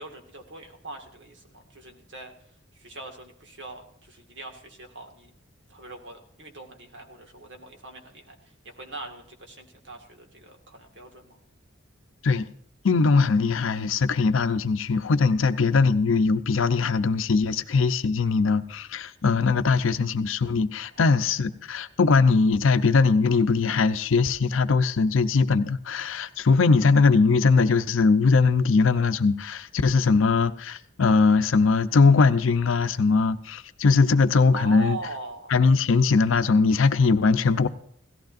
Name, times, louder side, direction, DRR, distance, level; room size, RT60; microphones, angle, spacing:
voice 1, 0.0-2.3 2.7-5.3 5.7-11.4 20.9-21.2 34.5-35.5, right 2 dB, 65° right, 1.9 m, -42 dB
voice 2, 12.8-35.0 35.5-37.7, left 4 dB, 80° left, 0.6 m, -21 dB
17.0 x 14.5 x 2.5 m
head